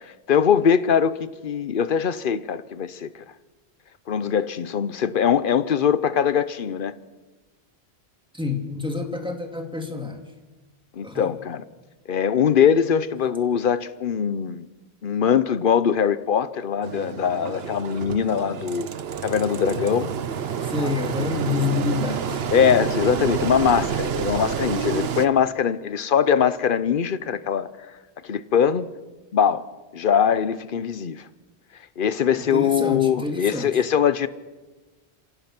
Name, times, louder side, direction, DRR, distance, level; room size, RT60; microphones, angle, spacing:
voice 1, 0.3-3.1 4.1-6.9 11.0-11.6 12.1-14.7 15.0-18.9 19.2-20.1 20.8-20.9 22.5-27.7 28.3-28.9 29.3-29.6 29.9-31.2 32.0-34.3, left 7 dB, 55° left, 0.9 m, -22 dB
voice 2, 8.3-10.2 11.0-11.3 20.6-22.5 32.5-33.8, left 4 dB, 5° right, 2.2 m, -28 dB
Engine, 16.8-25.3, right 8 dB, 70° right, 1.1 m, -28 dB
26.5 x 17.0 x 6.0 m
omnidirectional pair, 1.1 m